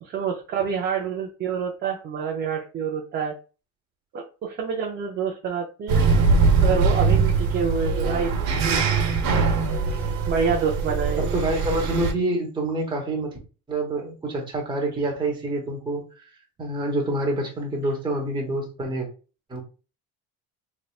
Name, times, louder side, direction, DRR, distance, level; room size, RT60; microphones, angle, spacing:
voice 1, 0.0-3.3 4.1-6.0 6.6-8.8 9.9-11.3, right 6 dB, 30° right, 1 dB, 0.5 m, -27 dB
sound 1, 5.9-12.1, right 4 dB, 85° right, 1.0 m, -22 dB
voice 2, 11.3-13.3 13.7-16.0 16.6-19.1 19.5-19.6, right 2 dB, 15° right, -1 dB, 1.0 m, -27 dB
4.0 x 3.2 x 2.3 m, 0.34 s
cardioid pair, 170°, 35 cm